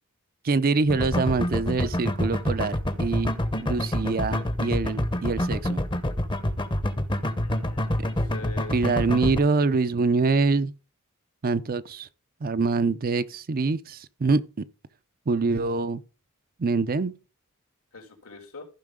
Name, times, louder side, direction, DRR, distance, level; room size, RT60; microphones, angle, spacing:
voice 1, 0.4-3.3 3.6-5.8 8.7-10.7 11.4-12.1 12.4-14.6 15.3-16.0 16.6-17.1, right 4 dB, 45° right, 0.5 m, -25 dB
sound 1, 0.9-9.4, left 1 dB, 20° left, 0.8 m, -27 dB
voice 2, 7.4-8.7 17.9-18.7, left 3 dB, 85° left, 2.9 m, -43 dB
14.5 x 5.7 x 3.6 m
head